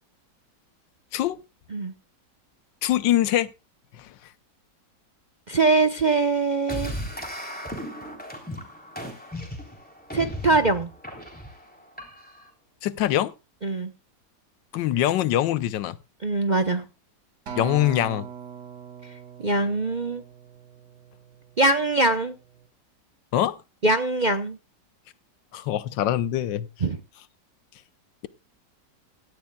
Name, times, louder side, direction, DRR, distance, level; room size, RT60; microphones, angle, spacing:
voice 1, 2.8-3.5 3.9-4.1 12.8-13.3 14.7-16.0 17.6-18.3 23.3-23.6 25.5-26.7, left 12 dB, 85° left, 1.5 m, -23 dB
voice 2, 5.5-6.9 10.1-10.9 13.6-13.9 16.2-16.8 19.4-20.2 21.6-22.4 23.8-24.6 26.8-27.0, right 3 dB, 40° right, 0.7 m, -22 dB
sound 1, 6.7-12.5, equal, 5° left, 3.5 m, -36 dB
Acoustic guitar, 17.5-21.9 22.5-22.7, right 8 dB, 65° right, 2.8 m, -41 dB
17.0 x 13.0 x 2.3 m
omnidirectional pair, 1.9 m